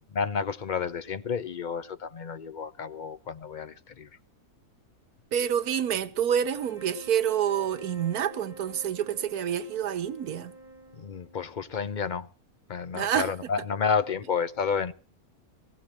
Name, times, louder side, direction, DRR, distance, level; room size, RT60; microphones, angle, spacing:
voice 1, 0.0-4.1 10.9-12.3 12.7-14.9, left 6 dB, 40° left, 0.7 m, -31 dB
voice 2, 5.3-10.5 12.9-13.3, right 9 dB, 85° right, 1.5 m, -27 dB
sound 1, 6.3-11.7, right 2 dB, 25° right, 1.7 m, -48 dB
18.5 x 17.0 x 3.0 m
omnidirectional pair, 1.5 m